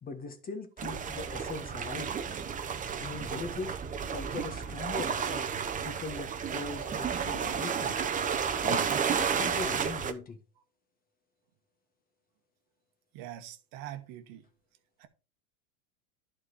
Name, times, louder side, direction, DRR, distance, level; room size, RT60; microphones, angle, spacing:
voice 1, 0.0-2.1 3.0-3.8 4.1-5.5 5.8-8.0 8.6-10.4, left 4 dB, 20° left, 1.5 m, -40 dB
sound 1, 0.8-10.1, right 7 dB, 20° right, 0.9 m, -32 dB
voice 2, 13.1-14.4 15.0-15.1, right 12 dB, 50° right, 1.4 m, -43 dB
11.0 x 4.4 x 5.0 m
supercardioid pair, 130°, 43 cm